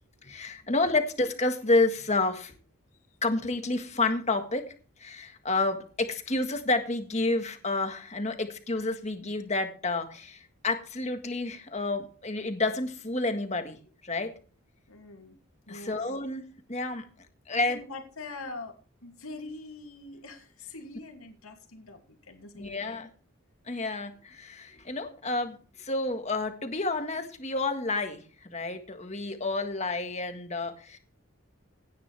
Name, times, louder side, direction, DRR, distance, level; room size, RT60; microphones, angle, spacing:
voice 1, 0.2-2.5 3.2-4.7 5.0-14.3 15.7-17.1 17.5-17.8 22.5-23.1 23.7-31.0, left 2 dB, 30° left, 7 dB, 1.7 m, -30 dB
voice 2, 14.9-15.4 15.7-16.0 17.5-23.0, left 3 dB, 80° left, 4 dB, 2.7 m, -44 dB
17.0 x 10.0 x 3.5 m, 0.37 s
head